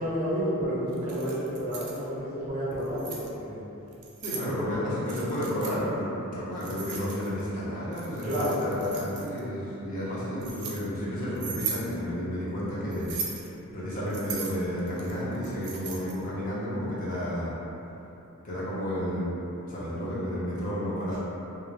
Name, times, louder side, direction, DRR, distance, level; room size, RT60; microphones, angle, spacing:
voice 1, 0.0-3.6 4.3-4.7 8.2-8.7, equal, 35° right, -9 dB, 0.6 m, -30 dB
Keys jangling, 0.9-2.0 2.7-3.3 3.9-4.5 5.1-5.8 6.6-7.5 7.9-9.4 10.0-10.8 11.4-11.9 12.9-13.5 14.1-16.2, right 6 dB, 85° right, 0.4 m, -37 dB
voice 2, 4.2-8.3 8.6-17.6 18.4-19.3 19.7-21.2, equal, 35° left, -9 dB, 0.6 m, -32 dB
2.4 x 2.0 x 3.2 m, 3.0 s
head